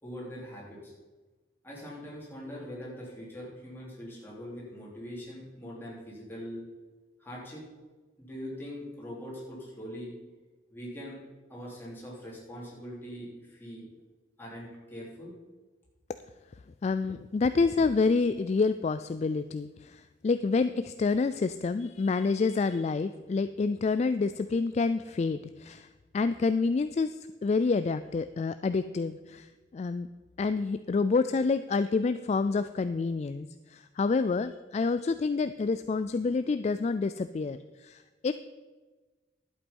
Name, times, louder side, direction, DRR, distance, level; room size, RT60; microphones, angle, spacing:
voice 1, 0.0-0.9 1.6-6.7 7.2-7.7 8.2-10.1 10.7-11.2 11.5-13.9 14.4-15.3, equal, 10° left, -5 dB, 3.4 m, -42 dB
voice 2, 16.8-25.9 26.1-27.1 27.4-30.1 30.4-38.3, left 4 dB, 35° left, 12 dB, 0.3 m, -28 dB
11.5 x 8.2 x 5.4 m, 1.3 s
head